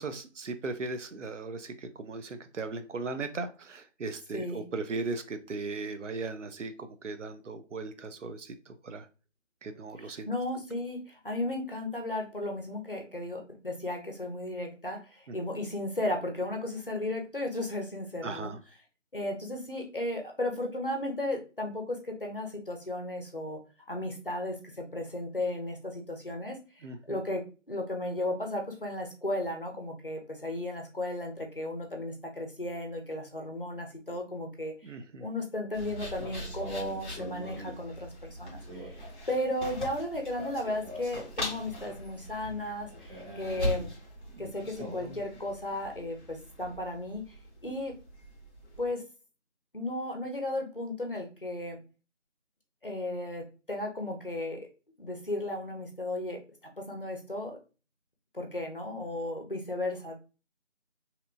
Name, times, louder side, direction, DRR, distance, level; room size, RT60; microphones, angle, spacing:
voice 1, 0.0-9.1 9.6-10.3 15.3-15.4 18.2-18.6 26.8-27.2 34.8-35.3 44.3-44.4, right 3 dB, 75° right, 9 dB, 0.5 m, -37 dB
voice 2, 4.3-4.6 10.0-18.5 19.1-23.6 23.9-34.9 35.2-43.9 44.4-47.4 47.6-47.9 48.8-49.0 49.7-51.8 52.8-54.7 55.0-56.4 56.8-57.6 58.3-60.2, left 1 dB, 45° left, 3 dB, 0.5 m, -35 dB
sound 1, 35.7-48.9, equal, 40° right, 1.4 m, -40 dB
2.8 x 2.1 x 2.5 m, 0.33 s
figure-of-eight pair, 180°, 37 cm